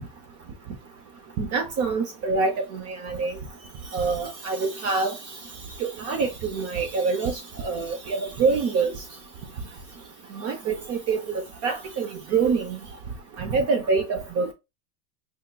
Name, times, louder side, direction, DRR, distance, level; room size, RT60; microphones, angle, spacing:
voice 1, 1.4-3.3 3.9-5.1 5.8-7.3 7.6-8.9 10.4-12.7 13.4-14.5, right 4 dB, 30° right, 0.7 m, -25 dB
5.7 x 2.9 x 2.3 m
supercardioid pair, 145°, 46 cm